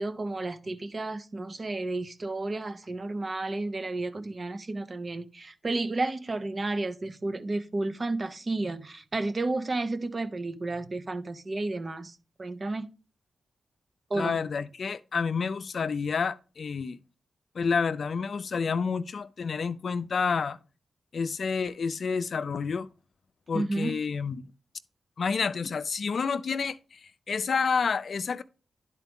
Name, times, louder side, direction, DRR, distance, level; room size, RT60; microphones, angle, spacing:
voice 1, 0.0-12.9 14.1-14.4 23.5-23.9, right 2 dB, 40° right, 0.8 m, -32 dB
voice 2, 14.1-17.0 17.5-20.6 21.1-22.9 23.5-24.4 25.2-28.4, left 5 dB, 65° left, 0.4 m, -29 dB
10.5 x 4.4 x 3.6 m
cardioid pair, 65°, 0 cm